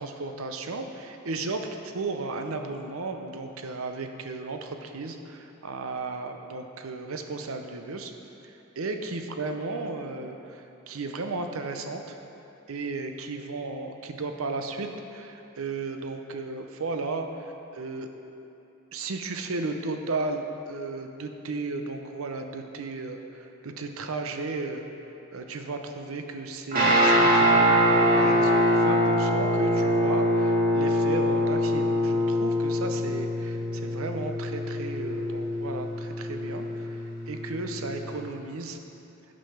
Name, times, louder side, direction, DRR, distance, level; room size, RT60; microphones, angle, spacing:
voice 1, 0.0-8.1 8.4-12.2 12.7-18.1 18.9-24.8 25.3-38.8, right 3 dB, 80° right, 6 dB, 0.7 m, -34 dB
Guitar, 26.7-38.2, equal, 45° right, 1.9 m, -24 dB
8.8 x 5.3 x 5.7 m, 2.8 s
head